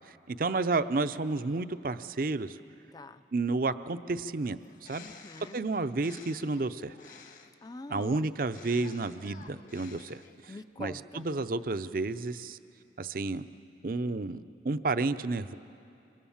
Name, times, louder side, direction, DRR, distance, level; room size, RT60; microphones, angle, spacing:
voice 1, 0.1-2.6 3.3-5.0 5.5-6.9 7.9-10.2 10.8-12.6 13.0-13.4 13.8-14.4 14.6-15.6, right 3 dB, 50° right, 12 dB, 0.6 m, -31 dB
voice 2, 2.9-3.2 5.0-5.6 7.6-8.4 10.5-11.3, left 2 dB, 20° left, 13 dB, 0.5 m, -44 dB
Bird, 4.6-7.7 8.4-10.6, left 5 dB, 45° left, 1.4 m, -53 dB
25.5 x 25.0 x 7.2 m, 2.6 s
head